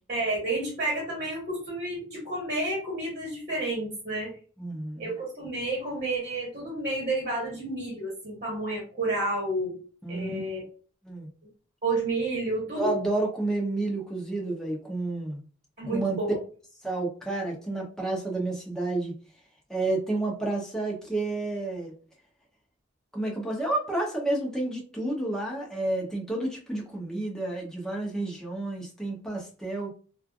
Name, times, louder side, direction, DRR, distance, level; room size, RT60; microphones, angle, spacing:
voice 1, 0.1-4.3 5.0-9.7 10.1-10.6 11.8-12.9 15.8-16.4, right 2 dB, 40° right, -3 dB, 1.2 m, -30 dB
voice 2, 4.6-5.1 10.0-10.4 11.0-11.3 12.8-15.4 15.9-16.2 16.8-19.1 19.7-21.9 23.1-29.9, right 2 dB, 5° left, -2 dB, 0.7 m, -30 dB
3.2 x 2.3 x 2.4 m, 0.40 s
head